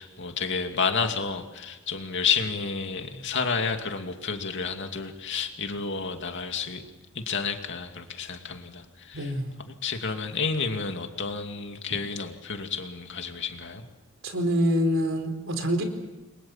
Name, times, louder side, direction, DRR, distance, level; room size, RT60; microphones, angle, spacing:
voice 1, 0.0-6.9 7.1-9.4 9.7-13.8, left 5 dB, 60° left, 5 dB, 2.6 m, -30 dB
voice 2, 9.1-9.5 14.2-15.8, equal, 70° right, 6 dB, 4.3 m, -25 dB
30.0 x 23.0 x 7.4 m, 1.1 s
head